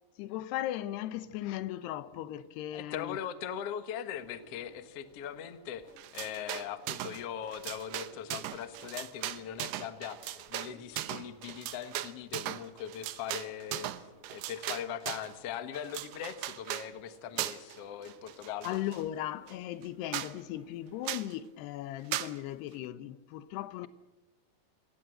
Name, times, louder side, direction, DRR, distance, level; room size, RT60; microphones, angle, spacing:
voice 1, 0.2-3.2 18.6-23.9, left 13 dB, 85° left, 3.0 m, -37 dB
voice 2, 2.7-18.8, left 9 dB, 60° left, 1.6 m, -40 dB
sound 1, 4.2-21.1, left 2 dB, 25° left, 2.1 m, -62 dB
sound 2, 6.0-7.2 7.5-15.3 15.7-16.9 17.4-17.8 18.1-19.0 19.5-19.6 19.8-19.9 20.1-20.3 21.1-21.3 22.1-22.3, right 14 dB, 80° right, 3.0 m, -38 dB
27.0 x 17.5 x 7.8 m
omnidirectional pair, 4.7 m